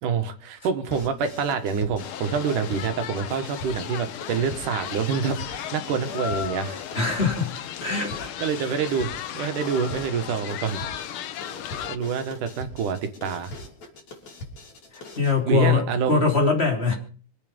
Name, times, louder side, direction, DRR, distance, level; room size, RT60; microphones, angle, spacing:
voice 1, 0.0-6.8 8.4-10.8 11.9-13.5 15.4-16.3, right 6 dB, 85° right, 8 dB, 3.2 m, -27 dB
sound 1, 0.9-15.4, left 2 dB, 60° left, 4.7 m, -42 dB
sound 2, 2.0-12.0, left 10 dB, 85° left, 1.1 m, -35 dB
voice 2, 6.9-7.5 7.8-8.3 8.7-8.8 15.2-17.0, left 4 dB, 20° left, 3 dB, 3.0 m, -22 dB
25.5 x 8.6 x 5.3 m, 0.41 s
omnidirectional pair, 3.5 m